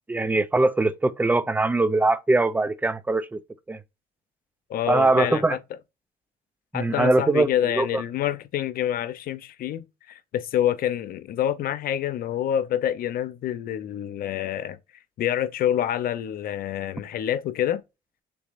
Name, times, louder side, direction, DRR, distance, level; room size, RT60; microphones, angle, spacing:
voice 1, 0.1-3.4 3.7-3.8 4.9-5.6 6.7-8.0, right 2 dB, 10° right, 0.5 m, -22 dB
voice 2, 4.7-5.6 6.7-14.8 15.2-17.8, left 11 dB, 60° left, 0.7 m, -27 dB
6.8 x 3.1 x 2.5 m
cardioid pair, 110°, 17 cm